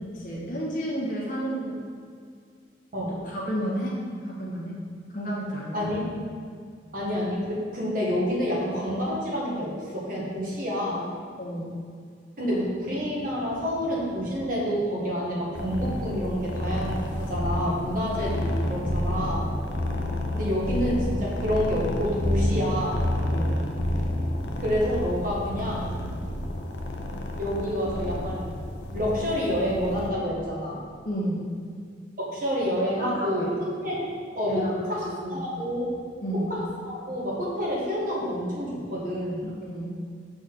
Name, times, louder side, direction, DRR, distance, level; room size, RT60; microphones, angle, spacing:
voice 1, 0.0-1.8 3.2-4.0 4.2-4.8 5.1-5.9 11.4-11.7 23.3-23.6 31.0-31.4 33.0-33.5 34.5-34.8 35.2-35.4 36.2-36.5 39.4-39.9, right 1 dB, 50° left, -5 dB, 1.4 m, -31 dB
voice 2, 6.9-11.1 12.4-19.5 20.3-23.0 24.6-25.9 27.4-28.5 28.9-30.8 32.2-33.5 33.8-34.1 34.3-35.9 36.5-39.5, equal, 50° right, -5 dB, 1.4 m, -28 dB
sound 1, 15.5-30.1, left 1 dB, 70° left, 0.6 m, -29 dB
6.0 x 4.3 x 3.8 m, 2.2 s
head